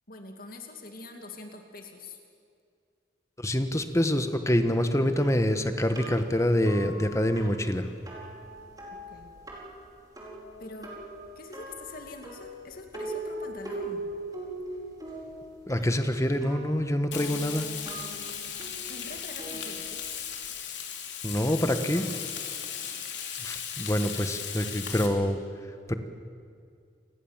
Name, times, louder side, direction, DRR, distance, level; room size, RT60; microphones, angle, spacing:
voice 1, 0.1-2.2 9.1-9.3 10.6-10.9 11.4-14.1 18.9-20.0 21.8-22.1, left 2 dB, 55° left, 3 dB, 2.4 m, -44 dB
voice 2, 3.4-7.9 15.7-17.7 21.2-22.0 23.4-25.4 25.9-26.0, equal, 15° left, 8 dB, 1.3 m, -26 dB
sound 1, 5.2-20.5, right 1 dB, 20° right, 4.7 m, -41 dB
Frying (food), 17.1-25.1, left 8 dB, 80° left, 3.2 m, -37 dB
28.5 x 20.5 x 7.4 m, 2.3 s
head